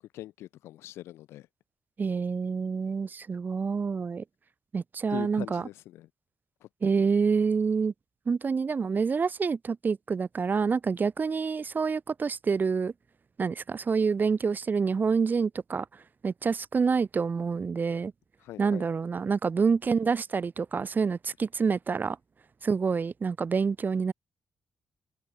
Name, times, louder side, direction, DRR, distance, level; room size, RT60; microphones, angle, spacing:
voice 1, 0.1-1.5 5.1-6.1 6.6-7.0 18.4-18.9, left 14 dB, 85° left, 0.8 m, -42 dB
voice 2, 2.0-4.2 4.7-5.6 6.8-7.9 8.3-12.9 13.4-15.8 16.2-18.1 18.6-22.2 22.6-24.1, right 5 dB, 45° right, 0.8 m, -27 dB
supercardioid pair, 45°, 4 cm